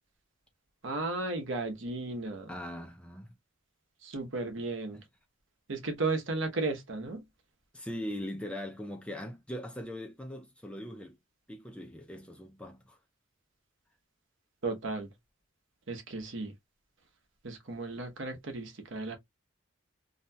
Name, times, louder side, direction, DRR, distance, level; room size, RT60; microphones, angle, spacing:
voice 1, 0.8-2.5 4.0-5.0 5.7-7.2 14.6-15.1 15.9-16.5 17.4-19.2, right 3 dB, 60° right, 0.9 m, -34 dB
voice 2, 2.5-3.3 7.7-11.2 11.5-13.0, equal, 5° left, 0.4 m, -40 dB
2.8 x 2.2 x 2.7 m
head